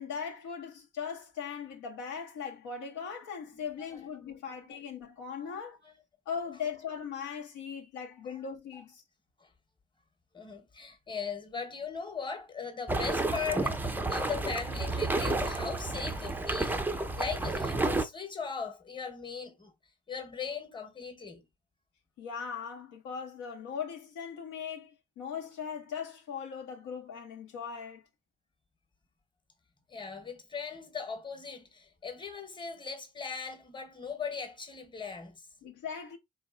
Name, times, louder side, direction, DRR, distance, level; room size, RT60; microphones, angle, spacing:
voice 1, 0.0-5.8 6.3-9.0 22.2-28.0 35.6-36.2, left 6 dB, 60° left, 0.8 m, -39 dB
voice 2, 3.9-4.8 5.4-5.5 5.8-5.9 9.4-9.5 10.3-19.7 20.1-21.4 29.9-35.4, left 5 dB, 15° left, 1.1 m, -39 dB
sound 1, 12.9-18.0, right 2 dB, 5° right, 0.5 m, -31 dB
3.9 x 2.8 x 2.5 m
figure-of-eight pair, 45°, 35 cm